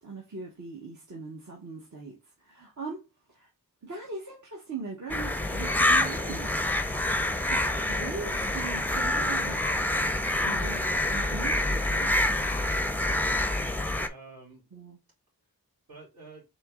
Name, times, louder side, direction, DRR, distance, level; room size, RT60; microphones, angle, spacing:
voice 1, 0.0-2.2 2.4-3.0 3.3-3.5 3.8-6.5 7.5-9.6 10.4-12.1 14.7-15.0, right 4 dB, 50° right, 1.2 m, -40 dB
sound 1, 5.1-14.1, left 1 dB, 5° left, 0.5 m, -27 dB
voice 2, 7.5-7.8 13.0-13.6 14.0-14.6 15.9-16.4, right 2 dB, 75° right, 3.0 m, -49 dB
4.4 x 3.2 x 3.6 m
wide cardioid pair, 60°, 36 cm